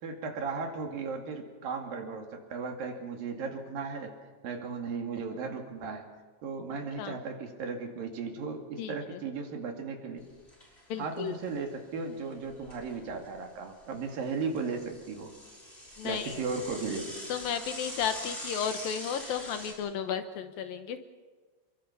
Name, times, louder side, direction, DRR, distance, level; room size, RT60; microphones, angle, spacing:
voice 1, 0.0-4.1 4.4-6.1 6.4-10.2 11.0-15.3 16.0-17.2, right 4 dB, 65° right, 3 dB, 4.0 m, -36 dB
voice 2, 8.8-9.2 10.9-11.3 16.0-16.4 17.3-21.0, left 8 dB, 70° left, 9 dB, 2.7 m, -34 dB
Bicycle / Mechanisms, 10.2-10.8 11.2-11.3 11.5-11.6 12.3-13.4 13.8-19.7, equal, 15° left, 6.3 m, -43 dB
28.5 x 23.0 x 5.7 m, 1.4 s
omnidirectional pair, 4.6 m